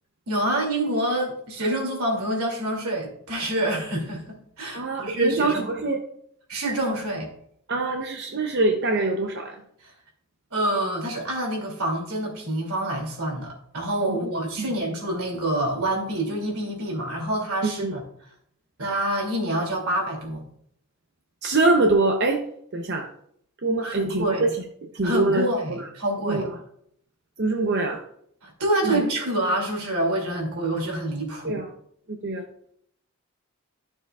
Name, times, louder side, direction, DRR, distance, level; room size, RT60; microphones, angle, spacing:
voice 1, 0.3-5.6 6.5-7.3 10.5-18.0 18.8-20.4 23.8-24.5 25.0-26.5 28.4-31.6, right 1 dB, 90° right, 0 dB, 2.7 m, -27 dB
voice 2, 4.7-6.0 7.7-9.6 14.1-14.2 17.6-17.9 21.4-22.4 22.7-23.1 23.6-24.5 24.8-25.9 26.3-26.5 27.4-28.0 28.8-29.0 31.4-31.7 32.1-32.5, right 2 dB, 50° right, 2 dB, 0.8 m, -24 dB
12.5 x 6.8 x 2.4 m, 0.68 s
head